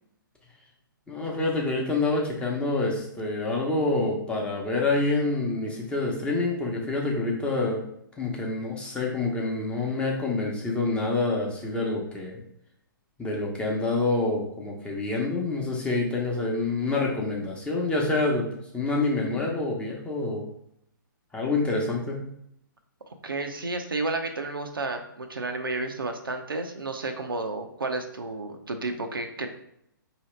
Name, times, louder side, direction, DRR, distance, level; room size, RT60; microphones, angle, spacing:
voice 1, 1.1-7.8 8.2-12.4 13.2-18.5 18.7-20.5 21.3-22.2, left 3 dB, 10° left, -2 dB, 0.8 m, -27 dB
voice 2, 23.2-29.5, right 2 dB, 85° right, 5 dB, 0.6 m, -31 dB
4.6 x 2.9 x 3.2 m, 0.73 s
figure-of-eight pair, 125°, 11 cm